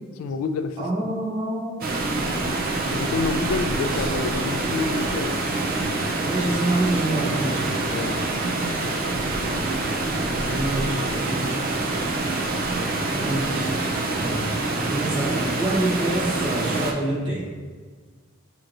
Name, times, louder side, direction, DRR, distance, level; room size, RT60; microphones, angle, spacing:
voice 1, 0.2-0.8 2.4-2.6 2.9-5.3 7.9-8.2, left 4 dB, 90° left, 8 dB, 0.3 m, -28 dB
voice 2, 0.8-1.9 3.8-4.1 6.2-7.7 10.1-11.5 13.1-13.8 14.2-17.5, right 1 dB, 20° right, -7 dB, 1.0 m, -27 dB
Water, 1.8-16.9, right 2 dB, 45° right, 0.4 m, -26 dB
6.4 x 3.0 x 2.5 m, 1.5 s
head